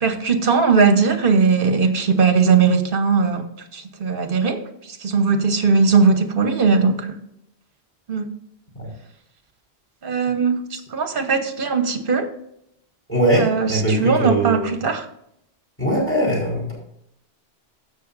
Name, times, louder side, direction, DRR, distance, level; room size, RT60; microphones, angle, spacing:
voice 1, 0.0-4.6 4.9-7.1 8.1-8.3 10.0-10.6 10.9-12.3 13.3-15.1, right 5 dB, 55° right, 1.2 m, -19 dB
voice 2, 13.1-14.7 15.8-16.7, right 1 dB, 10° left, 4.4 m, -20 dB
16.0 x 6.6 x 2.6 m
omnidirectional pair, 1.1 m